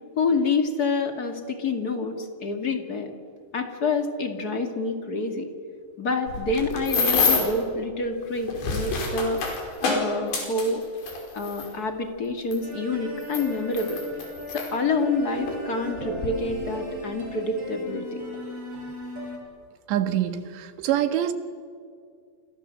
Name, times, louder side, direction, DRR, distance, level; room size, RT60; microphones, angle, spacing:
voice 1, 0.1-3.1 3.5-5.5 6.0-9.4 9.8-10.8 11.3-14.0 14.5-18.2, left 3 dB, 40° left, 5 dB, 1.4 m, -27 dB
sound 1, 6.3-7.6 8.4-11.7 12.5-12.6 13.2-14.7 15.5-15.6 16.0-16.3, left 4 dB, 85° left, 7.5 m, -27 dB
sound 2, 12.6-19.4, equal, 30° right, 5.8 m, -38 dB
voice 2, 19.9-21.3, right 11 dB, 80° right, 9 dB, 3.7 m, -25 dB
29.0 x 26.5 x 7.7 m, 2.2 s
omnidirectional pair, 5.0 m